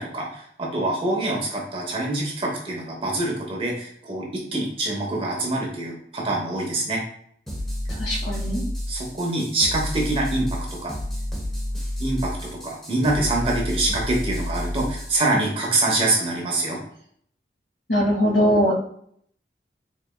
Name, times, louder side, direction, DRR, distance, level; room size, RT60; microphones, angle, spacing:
voice 1, 0.0-7.0 8.9-10.9 12.0-16.8, right 2 dB, 30° right, -1 dB, 0.9 m, -25 dB
sound 1, 7.5-15.2, left 1 dB, ahead, 0.9 m, -30 dB
voice 2, 8.0-8.7 17.9-18.7, equal, 90° left, -3 dB, 1.5 m, -21 dB
4.1 x 3.4 x 2.3 m, 0.65 s
head